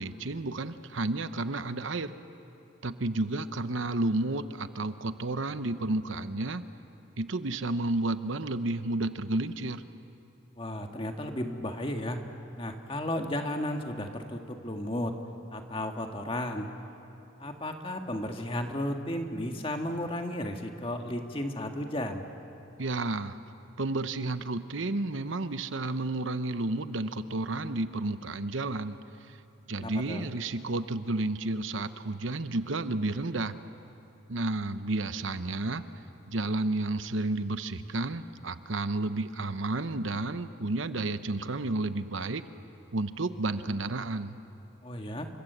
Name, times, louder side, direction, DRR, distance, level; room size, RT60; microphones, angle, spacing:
voice 1, 0.0-2.2 2.8-6.6 7.2-9.8 22.8-23.4 23.8-29.0 29.3-29.4 29.7-33.6 34.3-35.8 36.3-42.4 42.9-44.4, right 2 dB, 75° right, 11 dB, 0.9 m, -31 dB
voice 2, 10.6-12.2 12.6-15.1 15.5-16.7 17.4-22.2 29.8-30.2 44.8-45.3, left 1 dB, 25° left, 4 dB, 1.7 m, -34 dB
29.5 x 25.0 x 8.1 m, 2.9 s
head